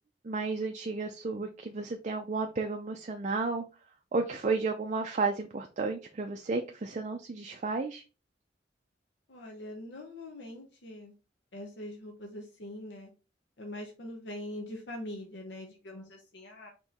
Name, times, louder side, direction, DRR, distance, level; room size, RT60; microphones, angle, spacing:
voice 1, 0.2-3.6 4.1-8.0, right 3 dB, 40° right, 4 dB, 0.5 m, -32 dB
voice 2, 9.3-11.1 11.5-13.1 13.6-16.7, left 1 dB, 75° left, 1 dB, 0.8 m, -43 dB
4.4 x 3.0 x 3.5 m, 0.31 s
head